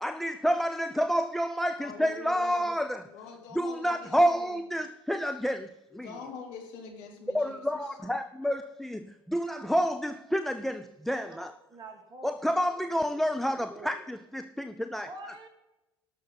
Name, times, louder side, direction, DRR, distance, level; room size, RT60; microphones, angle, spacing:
voice 1, 0.0-3.1 3.5-5.7 5.9-6.2 7.3-11.5 12.2-15.1, equal, ahead, 0.5 m, -29 dB
voice 2, 1.8-2.7 3.1-4.2 6.0-8.3, left 5 dB, 55° left, 2.8 m, -44 dB
voice 3, 11.3-12.4 13.1-13.2 13.5-14.0 15.0-15.5, right 2 dB, 30° right, 2.7 m, -47 dB
18.0 x 6.6 x 4.0 m
figure-of-eight pair, 65°, 13 cm